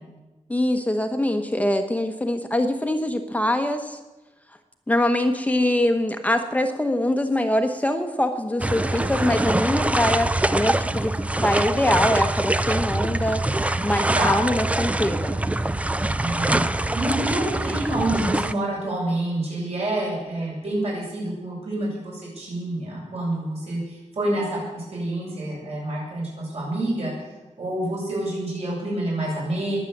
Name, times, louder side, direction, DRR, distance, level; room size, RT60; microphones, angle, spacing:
voice 1, 0.5-4.0 4.9-13.4 13.8-15.4, left 1 dB, 10° left, 6 dB, 1.0 m, -23 dB
sound 1, 8.6-18.5, right 1 dB, 10° right, 0.4 m, -24 dB
voice 2, 16.1-16.6 16.9-27.1 27.6-29.8, right 1 dB, 55° right, -5 dB, 7.8 m, -27 dB
21.5 x 9.0 x 7.3 m, 1.1 s
wide cardioid pair, 170°, 13 cm